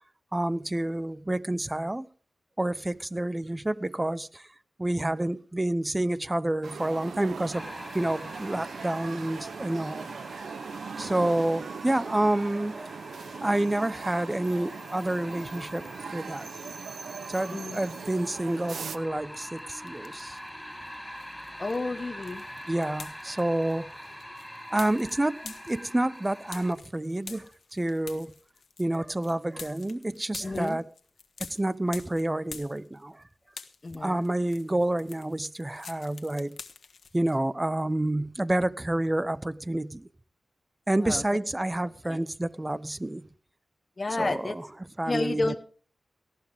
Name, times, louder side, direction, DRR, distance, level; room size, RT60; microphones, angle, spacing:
voice 1, 0.3-2.1 2.6-4.5 4.8-7.7 7.9-10.1 11.0-13.0 13.4-16.5 17.3-20.4 22.7-24.0 24.7-28.3 28.8-30.8 31.4-33.2 33.9-36.6 37.1-40.1 40.9-43.3 44.2-44.6 45.0-45.6, right 1 dB, 20° right, 0.7 m, -29 dB
sound 1, 6.6-19.0, right 5 dB, 85° right, 0.7 m, -40 dB
sound 2, 7.5-26.7, equal, ahead, 6.0 m, -44 dB
sound 3, 19.3-20.5 20.8-33.2 33.5-37.4, left 5 dB, 80° left, 1.5 m, -47 dB
voice 2, 21.6-22.4 30.4-30.8 33.8-34.3 41.0-41.2 42.0-42.2 44.0-44.5 45.1-45.6, left 3 dB, 35° left, 1.1 m, -31 dB
18.5 x 14.0 x 3.5 m
wide cardioid pair, 75°, 0 cm